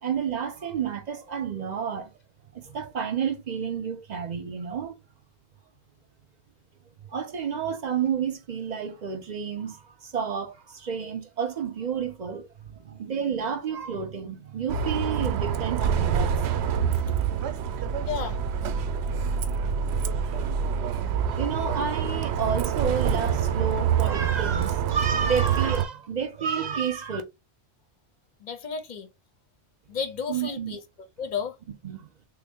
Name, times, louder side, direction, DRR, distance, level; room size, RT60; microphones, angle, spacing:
voice 1, 0.0-2.1 2.5-5.0 7.1-16.4 21.3-27.2 30.3-30.8 31.8-32.1, right 7 dB, 50° right, 0.7 m, -30 dB
Bus, 14.7-25.8, right 7 dB, 80° right, 0.8 m, -26 dB
voice 2, 18.1-18.4 28.4-29.1 29.9-30.8 31.2-31.6, left 6 dB, 50° left, 0.7 m, -32 dB
3.4 x 2.0 x 3.5 m
omnidirectional pair, 1.1 m